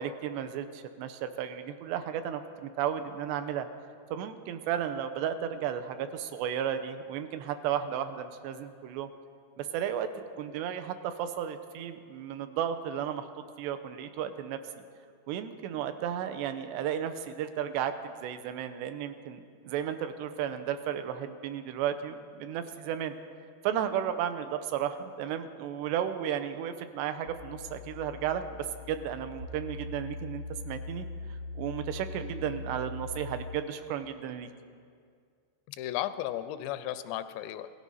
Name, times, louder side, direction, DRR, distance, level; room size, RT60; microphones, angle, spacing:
voice 1, 0.0-3.7 4.1-9.1 9.6-10.1 10.4-14.6 15.3-23.1 23.6-34.5, right 9 dB, 85° right, 9 dB, 2.8 m, -34 dB
sound 1, 27.3-33.4, left 3 dB, 60° right, 1.3 m, -41 dB
voice 2, 35.7-37.7, left 13 dB, 90° left, 12 dB, 2.9 m, -35 dB
17.5 x 13.5 x 5.5 m, 2.2 s
omnidirectional pair, 4.9 m